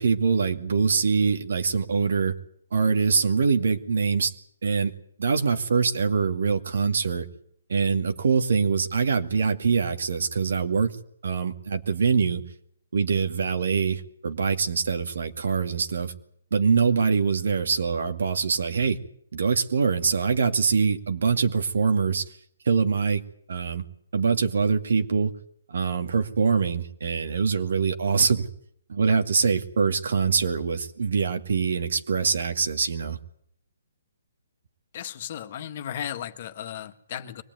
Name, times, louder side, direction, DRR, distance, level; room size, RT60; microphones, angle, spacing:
voice 1, 0.0-2.4 2.7-4.3 4.6-4.9 5.2-7.3 7.7-11.0 11.2-12.4 12.9-16.1 16.5-19.0 19.3-22.2 22.7-23.2 23.5-23.8 24.1-25.3 25.7-28.5 28.9-33.2, right 5 dB, 75° right, 7 dB, 2.3 m, -24 dB
voice 2, 34.9-37.4, left 10 dB, 45° left, 8 dB, 1.7 m, -35 dB
24.0 x 18.5 x 9.4 m, 0.67 s
hypercardioid pair, 160°, 0 cm